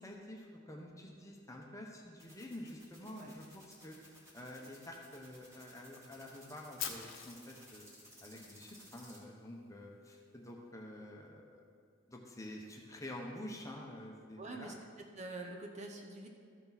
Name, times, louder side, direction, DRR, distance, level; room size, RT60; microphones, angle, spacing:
voice 1, 0.0-7.9 8.2-11.6 12.1-14.7, left 1 dB, 15° left, 0 dB, 0.9 m, -49 dB
sound 1, 2.2-9.2, equal, 15° right, 1.7 m, -58 dB
Fire, 6.8-8.8, left 8 dB, 75° left, 1.0 m, -44 dB
voice 2, 14.4-14.7 15.2-16.3, right 2 dB, 35° right, 2 dB, 0.8 m, -45 dB
13.5 x 6.7 x 4.1 m, 2.3 s
head